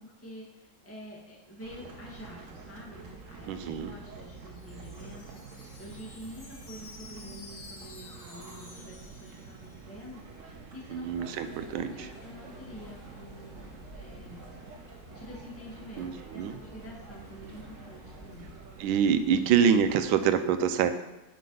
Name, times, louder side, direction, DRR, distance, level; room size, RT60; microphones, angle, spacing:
voice 1, 0.0-14.4 15.1-18.5, equal, 5° left, -3 dB, 1.4 m, -48 dB
sound 1, 1.6-20.2, right 4 dB, 45° right, 1.2 m, -48 dB
voice 2, 3.5-3.9 10.9-12.1 16.0-16.5 18.8-20.9, right 7 dB, 80° right, 10 dB, 1.4 m, -26 dB
Wind chime, 4.1-10.1, left 3 dB, 90° left, 2.7 m, -51 dB
sound 2, 11.2-18.5, left 1 dB, 35° left, 2.5 m, -52 dB
7.5 x 5.7 x 5.5 m, 1.0 s
omnidirectional pair, 2.2 m